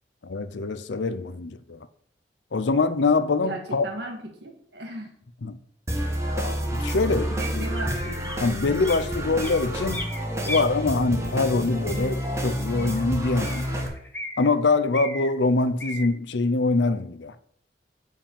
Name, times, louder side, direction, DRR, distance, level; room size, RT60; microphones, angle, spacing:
voice 1, 0.2-1.8 2.5-3.9 5.4-5.6 6.4-7.7 8.4-10.0 10.5-13.9 14.4-17.3, left 3 dB, 85° left, 0.7 m, -24 dB
voice 2, 3.4-5.1 7.3-8.4, right 1 dB, 70° right, 2.0 m, -36 dB
sound 1, 5.9-13.9, equal, 15° right, 1.5 m, -29 dB
sound 2, 7.8-8.4 8.8-9.0 9.4-10.6 11.9-12.0 12.8-12.9 13.4-14.5 14.9-15.3 15.8-16.1, left 1 dB, 10° left, 1.0 m, -36 dB
7.6 x 4.6 x 7.1 m
head